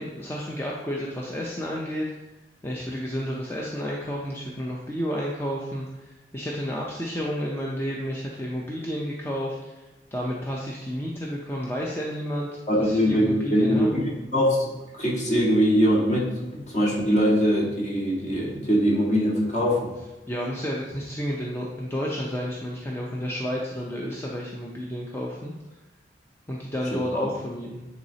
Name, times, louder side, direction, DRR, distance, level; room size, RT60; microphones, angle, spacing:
voice 1, 0.0-2.1 2.6-5.9 6.3-9.7 10.1-12.5 12.8-13.9 20.3-25.5 26.5-27.9, equal, 15° left, -3 dB, 0.5 m, -31 dB
voice 2, 12.7-19.9 26.9-27.3, equal, 45° left, -4 dB, 1.6 m, -22 dB
9.3 x 4.0 x 2.8 m, 1.1 s
head